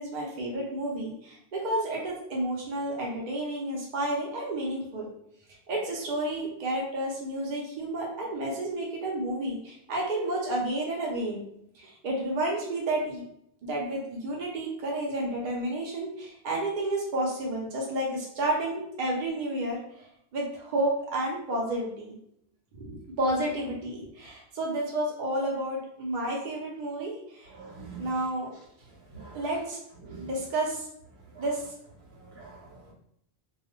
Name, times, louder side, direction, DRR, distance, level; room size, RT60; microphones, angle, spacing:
voice 1, 0.0-5.1 5.7-11.4 11.7-13.2 13.6-19.8 20.3-22.1 22.8-27.5 28.0-28.5 29.3-29.8 30.2-30.9 31.4-31.6, right 1 dB, 55° right, -3 dB, 0.7 m, -31 dB
voice 2, 27.5-28.1 29.1-29.5 30.0-30.3 31.3-31.4 32.1-32.9, right 4 dB, 75° right, -4 dB, 1.1 m, -45 dB
2.3 x 2.0 x 3.0 m, 0.72 s
omnidirectional pair, 1.1 m